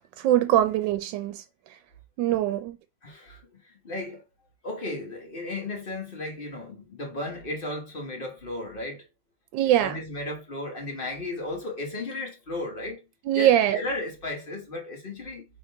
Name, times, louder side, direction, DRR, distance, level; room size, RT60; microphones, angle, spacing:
voice 1, 0.2-1.4 2.2-2.8 9.5-10.0 13.3-13.8, right 12 dB, 90° right, 1.3 m, -22 dB
voice 2, 3.0-4.2 4.6-9.0 9.6-13.0 13.3-15.4, left 2 dB, 35° left, 1.2 m, -35 dB
3.8 x 3.2 x 4.5 m
omnidirectional pair, 1.9 m